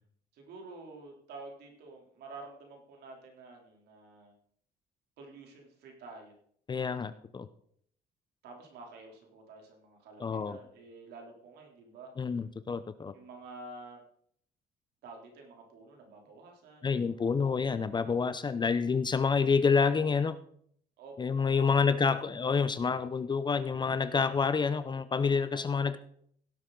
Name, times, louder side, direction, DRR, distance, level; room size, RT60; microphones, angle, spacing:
voice 1, 0.3-4.3 5.2-6.3 8.4-12.1 13.1-14.0 15.0-17.4 21.0-22.2, right 3 dB, 75° right, 1 dB, 3.4 m, -49 dB
voice 2, 6.7-7.5 10.2-10.6 12.2-13.1 16.8-20.4 21.2-26.0, left 5 dB, 25° left, 13 dB, 0.6 m, -28 dB
16.5 x 8.3 x 3.9 m, 0.65 s
cardioid pair, 110°, 17 cm